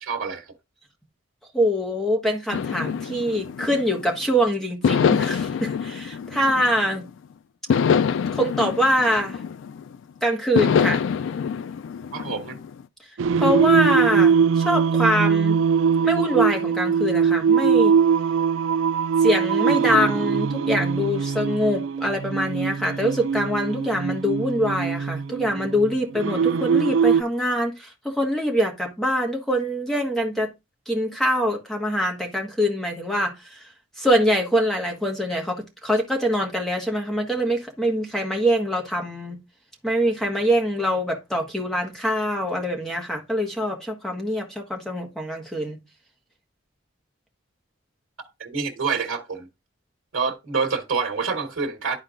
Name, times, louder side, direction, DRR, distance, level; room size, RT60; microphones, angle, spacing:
voice 1, 0.0-0.5 12.1-12.6 48.4-49.5 50.1-52.0, right 5 dB, 90° right, 1.4 m, -27 dB
voice 2, 1.5-7.0 8.3-9.4 10.2-11.0 13.4-15.6 16.0-17.9 19.2-30.5 30.9-33.6 34.0-39.4 39.8-45.8, equal, ahead, 1.3 m, -24 dB
sound 1, 2.5-4.2 4.8-7.1 7.7-10.0 10.5-12.8, left 7 dB, 70° left, 0.3 m, -25 dB
Singing, 13.2-27.2, right 6 dB, 75° right, 0.3 m, -21 dB
12.0 x 4.3 x 2.5 m
head